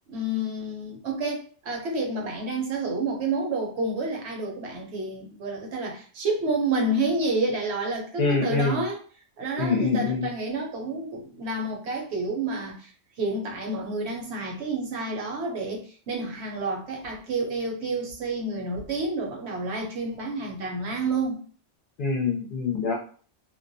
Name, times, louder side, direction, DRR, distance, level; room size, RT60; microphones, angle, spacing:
voice 1, 0.1-9.0 9.4-12.9 13.2-21.4, right 2 dB, 70° right, 1 dB, 0.9 m, -29 dB
voice 2, 8.2-8.8 9.6-10.3 22.0-22.9, left 4 dB, 60° left, -1 dB, 0.6 m, -25 dB
2.3 x 2.1 x 2.5 m, 0.41 s
omnidirectional pair, 1.2 m